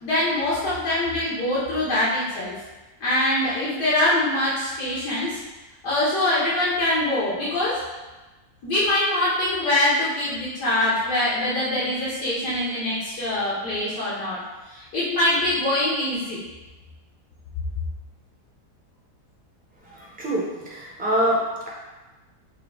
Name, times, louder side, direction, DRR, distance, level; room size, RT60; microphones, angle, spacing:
voice 1, 0.0-2.5 3.0-5.4 5.8-7.8 8.6-14.4 14.7-16.4, left 1 dB, 80° left, -10 dB, 1.7 m, -23 dB
voice 2, 19.8-21.7, equal, 10° right, -6 dB, 0.6 m, -25 dB
5.7 x 2.3 x 3.5 m, 1.1 s
omnidirectional pair, 1.8 m